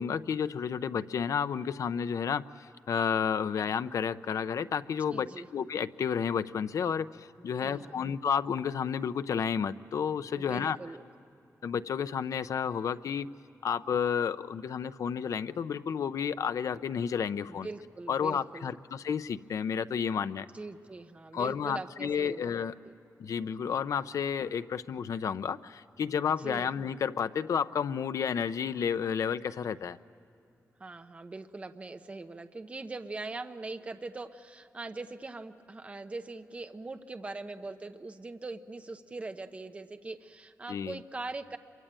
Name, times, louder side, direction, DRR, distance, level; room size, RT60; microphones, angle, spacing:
voice 1, 0.0-10.8 11.6-13.3 13.6-17.7 18.1-20.5 21.3-22.7 23.2-30.0 40.7-41.0, left 7 dB, 75° left, 12 dB, 0.6 m, -31 dB
voice 2, 5.1-5.5 7.6-8.0 10.3-11.0 17.5-18.7 20.5-22.9 26.4-26.7 30.8-41.6, right 3 dB, 25° right, 7 dB, 0.8 m, -41 dB
27.0 x 23.5 x 8.9 m, 2.7 s
wide cardioid pair, 165°, 6 cm